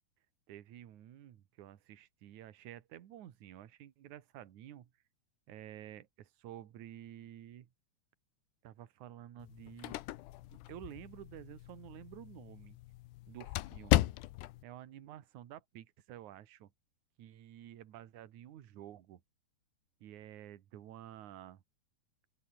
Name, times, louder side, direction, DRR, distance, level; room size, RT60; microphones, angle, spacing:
voice 1, 0.5-4.9 5.5-7.7 8.6-10.0 10.5-12.8 13.3-14.1 14.6-16.7 17.2-19.2 20.0-21.6, right 11 dB, 55° right, 2.6 m, -51 dB
sound 1, 9.4-14.6, left 17 dB, 80° left, 2.9 m, -36 dB
open air
omnidirectional pair, 4.7 m